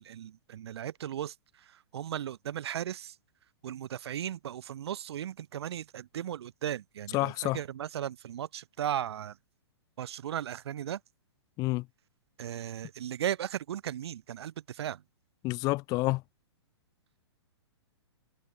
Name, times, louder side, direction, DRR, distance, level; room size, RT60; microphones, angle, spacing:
voice 1, 0.0-3.2 3.6-9.4 10.0-11.0 12.4-15.0, right 10 dB, 70° right, 0.4 m, -36 dB
voice 2, 7.1-7.6 11.6-11.8 15.4-16.2, left 21 dB, 25° left, 0.4 m, -28 dB
hypercardioid pair, 120°, 14 cm